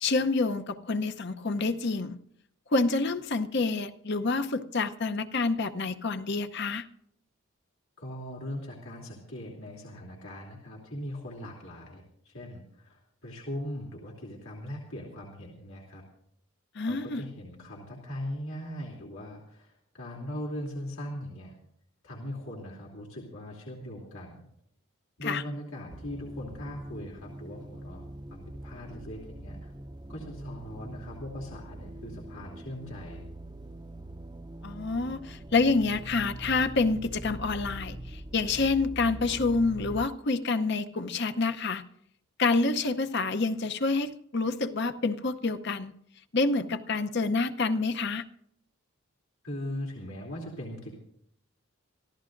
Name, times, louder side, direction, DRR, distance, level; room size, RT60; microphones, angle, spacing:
voice 1, 0.0-2.2 2.7-6.9 16.7-17.2 25.2-25.4 34.6-41.8 42.4-45.9 46.3-48.3, left 3 dB, 50° left, 9 dB, 0.8 m, -28 dB
voice 2, 8.0-16.0 16.8-21.6 22.0-24.4 25.2-29.7 30.1-33.2 49.4-50.9, left 1 dB, 80° left, -4 dB, 3.0 m, -40 dB
sound 1, 25.9-40.1, right 1 dB, 20° right, 0.6 m, -43 dB
26.0 x 14.5 x 2.6 m, 0.72 s
head